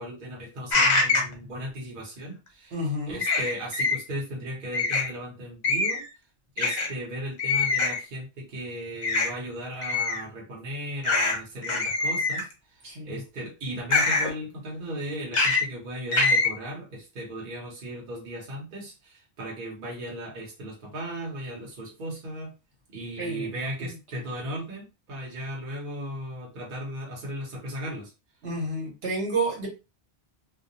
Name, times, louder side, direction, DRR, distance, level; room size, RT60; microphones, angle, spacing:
voice 1, 0.0-2.7 3.1-6.0 6.6-22.5 22.9-28.1, right 1 dB, 50° right, -2 dB, 1.0 m, -36 dB
sound 1, 0.7-1.3 3.2-4.0 4.7-5.1 5.6-6.1 6.6-6.9 7.4-8.0 9.0-9.3 9.8-10.2 11.0-11.4 11.6-12.5 13.9-14.3 15.3-15.6 16.1-16.5, left 3 dB, 45° left, 0.7 m, -23 dB
voice 2, 2.7-3.2 12.8-13.2 23.2-23.5 23.8-24.2 28.4-29.7, right 1 dB, 75° right, -2 dB, 1.3 m, -30 dB
2.4 x 2.2 x 2.7 m, 0.28 s
omnidirectional pair, 1.1 m